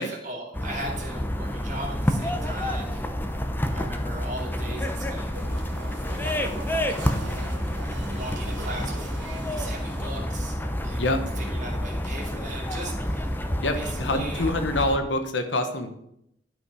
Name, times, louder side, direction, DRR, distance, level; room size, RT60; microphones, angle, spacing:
voice 1, 0.0-3.1 3.7-5.3 6.1-6.5 6.9-7.4 8.1-9.1 9.5-10.6 10.8-13.4 13.7-14.5, right 1 dB, 45° right, 0 dB, 2.3 m, -38 dB
sound 1, 0.5-15.0, equal, 10° left, 0.6 m, -29 dB
sound 2, 5.3-10.3, right 2 dB, 90° right, 1.3 m, -40 dB
voice 2, 11.0-11.4 13.6-15.9, left 1 dB, 75° left, 7 dB, 1.1 m, -26 dB
11.5 x 5.2 x 4.9 m, 0.78 s
head